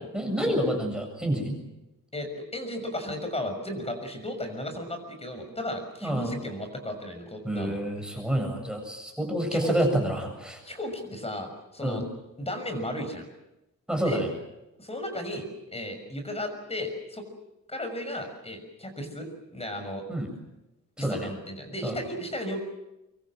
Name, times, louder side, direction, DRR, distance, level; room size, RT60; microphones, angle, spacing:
voice 1, 0.1-1.6 6.0-6.4 7.4-10.6 11.8-12.0 13.9-14.3 20.1-20.3 21.0-21.3 21.8-21.9, right 1 dB, ahead, 3 dB, 7.5 m, -28 dB
voice 2, 2.1-7.8 9.5-9.8 10.6-12.0 12.4-13.3 14.0-14.2 14.8-17.2 17.7-20.0 21.0-22.6, left 1 dB, 20° left, 6 dB, 6.3 m, -35 dB
25.5 x 24.0 x 7.7 m, 0.94 s
wide cardioid pair, 135°, 33 cm